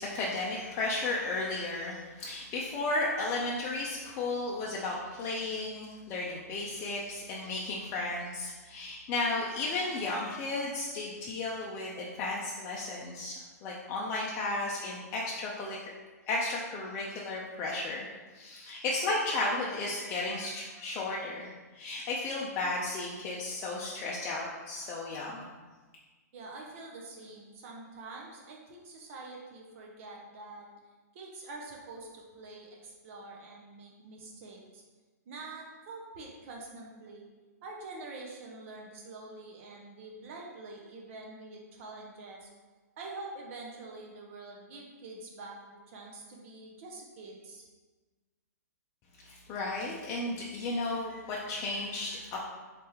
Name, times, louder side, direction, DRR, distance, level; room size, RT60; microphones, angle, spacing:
voice 1, 0.0-13.3 13.6-15.8 16.3-18.1 18.3-21.5 21.7-25.5 49.2-52.4, left 2 dB, 30° left, -4 dB, 0.5 m, -34 dB
voice 2, 26.3-30.7 31.1-34.8 35.3-37.2 37.6-42.5 43.0-47.7, right 3 dB, 50° right, -1 dB, 0.7 m, -46 dB
3.3 x 3.3 x 3.0 m, 1.3 s
hypercardioid pair, 125°, 9 cm